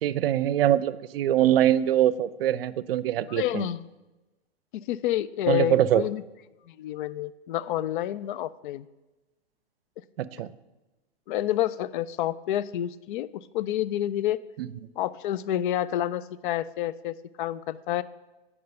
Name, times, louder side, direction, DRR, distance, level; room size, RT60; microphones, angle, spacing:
voice 1, 0.0-3.7 5.5-6.0 10.2-10.5 14.6-14.7, right 12 dB, 65° right, 18 dB, 0.6 m, -23 dB
voice 2, 3.3-3.8 4.7-6.2 6.7-8.9 11.3-13.3 13.5-14.4 15.0-18.0, left 12 dB, 55° left, 17 dB, 0.5 m, -29 dB
9.3 x 5.5 x 6.7 m, 1.1 s
hypercardioid pair, 115°, 31 cm